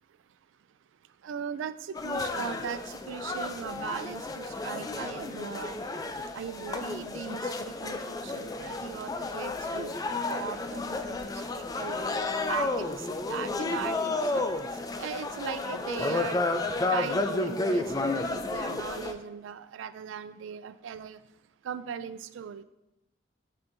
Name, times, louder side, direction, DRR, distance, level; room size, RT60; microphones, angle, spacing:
voice 1, 1.2-5.8 6.3-12.0 12.5-14.5 14.9-16.4 16.9-21.2 21.6-22.6, right 7 dB, 90° right, 14 dB, 0.3 m, -39 dB
sound 1, 1.9-19.1, left 2 dB, 20° left, 0.3 m, -32 dB
9.3 x 4.4 x 2.6 m, 0.92 s
head